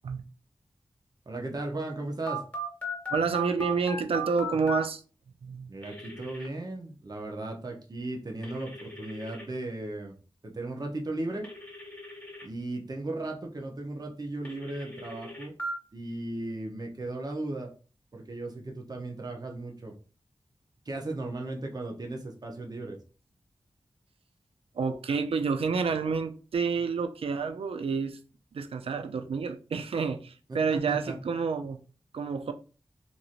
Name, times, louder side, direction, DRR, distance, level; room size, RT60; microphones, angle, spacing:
voice 1, 1.3-2.4 5.7-10.2 10.4-11.5 12.4-15.5 15.9-17.7 18.1-19.9 20.9-23.0 30.5-31.2, right 2 dB, 40° right, 0.6 m, -36 dB
Telephone, 2.3-4.8 5.8-6.5 8.4-9.4 11.4-12.5 14.5-15.7, equal, 15° left, 1.5 m, -37 dB
voice 2, 3.1-5.0 5.4-5.7 24.8-28.2 28.5-31.8 32.1-32.5, right 5 dB, 75° right, 0.4 m, -29 dB
3.0 x 2.6 x 2.4 m
cardioid pair, 40°, 10 cm